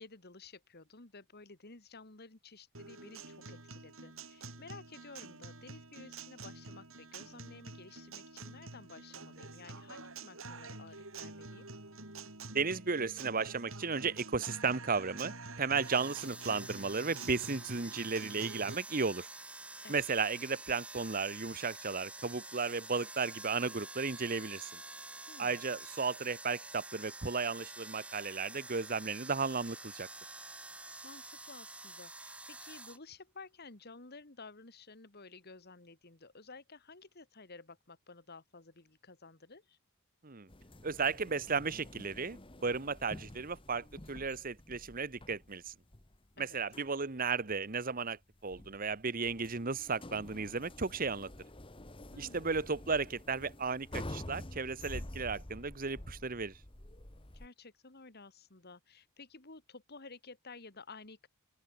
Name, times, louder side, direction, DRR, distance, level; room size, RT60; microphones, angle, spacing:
voice 1, 0.0-11.7 19.8-19.9 25.3-25.6 31.0-39.8 46.4-46.6 52.1-52.6 57.3-61.3, left 3 dB, 45° left, 1.8 m, -53 dB
Guitar, 2.7-18.8, right 3 dB, 60° right, 5.7 m, -48 dB
voice 2, 12.5-19.3 19.9-24.7 25.4-30.1 40.2-40.5 40.8-45.7 46.4-51.3 52.2-56.5, right 4 dB, 40° right, 1.1 m, -34 dB
sound 1, 15.8-33.0, right 2 dB, 5° right, 0.6 m, -48 dB
sound 2, 40.5-57.5, left 1 dB, 25° left, 1.7 m, -49 dB
open air
head